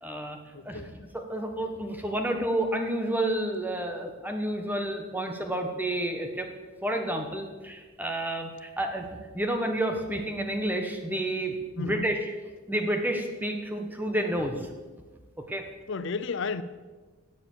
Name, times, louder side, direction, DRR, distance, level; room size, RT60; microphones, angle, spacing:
voice 1, 0.0-0.4 0.6-0.8 1.1-6.5 6.8-12.3 12.7-14.7 15.5-15.7, right 1 dB, 10° right, 4 dB, 1.3 m, -30 dB
voice 2, 0.5-1.0 11.8-12.2 15.9-16.6, left 4 dB, 55° left, 14 dB, 0.5 m, -33 dB
17.0 x 7.0 x 6.7 m, 1.3 s
head